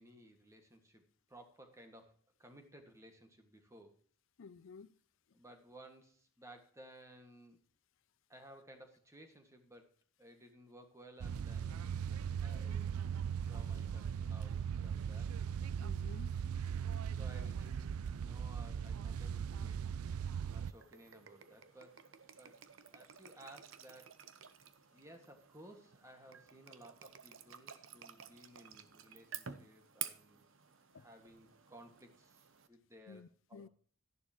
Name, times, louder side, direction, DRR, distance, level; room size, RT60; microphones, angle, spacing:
voice 1, 0.0-3.9 5.3-7.6 8.3-9.9 10.2-11.9 12.4-13.1 13.4-15.8 17.1-17.9 18.1-19.8 20.4-22.0 22.4-22.6 22.9-24.6 24.9-30.5 30.9-33.7, right 1 dB, 15° right, 1.8 m, -58 dB
voice 2, 4.4-4.9 15.8-16.4 30.9-31.1 33.1-33.7, left 5 dB, 65° left, 0.5 m, -53 dB
sound 1, 11.2-20.7, right 7 dB, 90° right, 0.4 m, -39 dB
sound 2, 20.0-32.7, right 9 dB, 65° right, 0.8 m, -52 dB
12.5 x 11.0 x 3.0 m
head